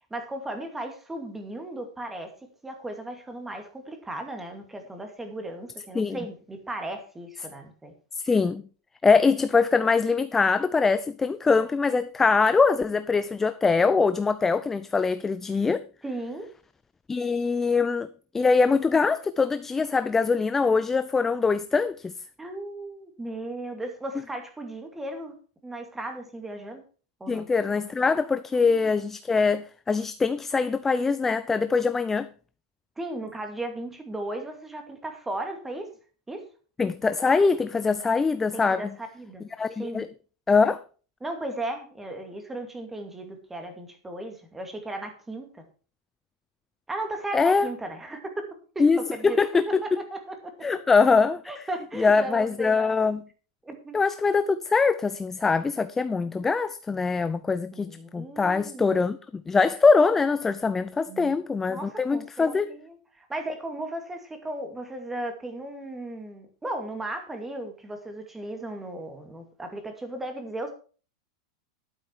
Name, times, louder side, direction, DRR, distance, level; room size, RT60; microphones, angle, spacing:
voice 1, 0.1-2.3 2.6-7.9 16.0-16.5 22.4-25.3 25.6-26.8 27.2-27.5 28.5-28.9 33.0-35.9 36.3-36.4 38.5-39.4 39.8-40.0 41.2-45.6 46.9-48.5 48.7-49.4 49.7-50.5 51.5-53.0 53.6-53.9 56.4-56.5 57.7-59.0 61.1-61.4 61.7-70.7, right 1 dB, 10° right, 2.3 m, -36 dB
voice 2, 8.2-8.6 9.0-15.8 17.1-18.1 18.3-22.1 27.3-32.3 36.8-38.8 39.6-40.1 40.5-40.8 47.3-47.7 48.8-49.0 49.2-49.8 50.6-51.4 52.0-53.2 53.9-62.7, left 4 dB, 10° left, 0.5 m, -23 dB
11.5 x 9.0 x 4.6 m
supercardioid pair, 145°, 3 cm